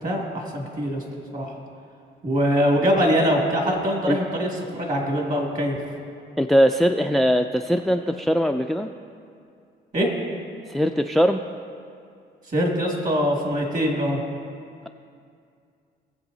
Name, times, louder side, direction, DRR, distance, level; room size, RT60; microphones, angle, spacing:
voice 1, 0.0-1.0 1.3-1.5 2.2-5.8 9.9-10.1 12.5-14.2, equal, 40° right, -1 dB, 2.4 m, -23 dB
voice 2, 6.4-8.9 10.7-11.4, equal, ahead, 6 dB, 0.3 m, -20 dB
20.0 x 7.4 x 2.7 m, 2.4 s
cardioid pair, 90°, 20 cm